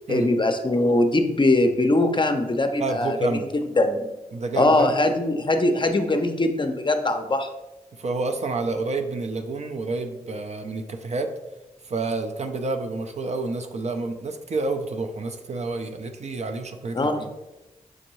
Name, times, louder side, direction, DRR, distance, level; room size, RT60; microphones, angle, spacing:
voice 1, 0.1-4.1 4.6-7.5 16.9-17.3, left 2 dB, 30° left, 6 dB, 0.5 m, -21 dB
voice 2, 2.8-3.5 4.3-4.9 7.9-11.3 11.8-17.3, right 3 dB, 45° right, 5 dB, 0.5 m, -29 dB
6.0 x 2.6 x 3.0 m, 1.0 s
cardioid pair, 45°, 16 cm